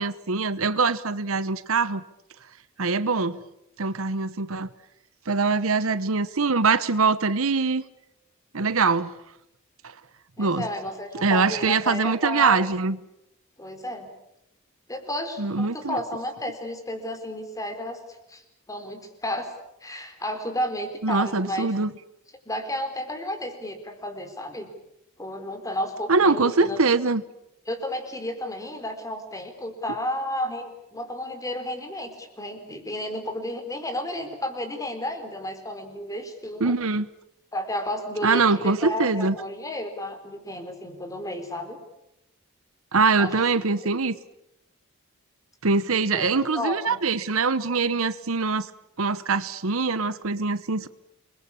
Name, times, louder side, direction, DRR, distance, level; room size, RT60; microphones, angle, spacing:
voice 1, 0.0-2.0 2.8-3.4 3.8-4.7 5.3-7.8 8.5-9.1 10.4-10.7 11.2-13.0 15.4-16.0 21.0-21.9 26.1-27.2 36.6-37.1 38.2-39.3 42.9-44.2 45.6-48.7 49.0-50.9, right 4 dB, 65° right, 15 dB, 1.0 m, -23 dB
voice 2, 10.4-12.7 13.6-14.1 14.9-18.0 18.3-18.4 18.7-19.5 19.8-21.7 22.5-24.7 25.2-26.8 27.7-36.7 37.5-41.8 43.2-43.4 43.8-43.9 46.1-47.0, left 1 dB, 15° left, 7 dB, 4.2 m, -32 dB
28.5 x 22.0 x 8.6 m, 0.83 s
head